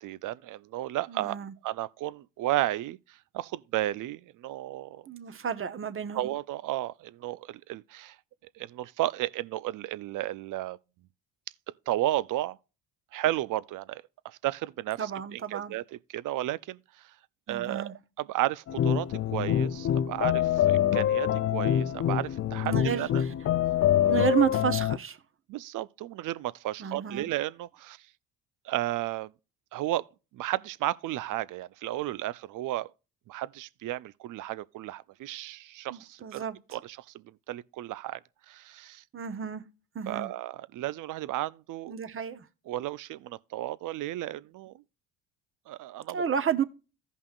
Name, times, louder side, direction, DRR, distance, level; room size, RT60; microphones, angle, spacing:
voice 1, 0.0-1.4 1.6-5.0 6.1-8.2 8.5-10.8 11.9-12.6 13.1-17.1 17.5-23.2 24.0-24.2 25.5-28.0 28.6-29.3 29.7-30.0 30.3-32.9 33.3-36.4 36.7-38.2 38.5-39.0 40.1-41.9 42.7-44.7 45.7-46.2, right 15 dB, 55° right, 0.6 m, -33 dB
voice 2, 1.1-1.5 5.1-6.3 15.0-15.7 17.5-17.9 22.6-23.3 24.1-25.2 26.8-27.3 35.9-36.6 39.1-39.6 39.9-40.3 41.9-42.4 46.1-46.6, right 8 dB, 35° right, 1.1 m, -31 dB
sound 1, 18.7-25.0, left 11 dB, 40° left, 0.5 m, -25 dB
15.0 x 5.5 x 2.4 m
hypercardioid pair, 60°, 37 cm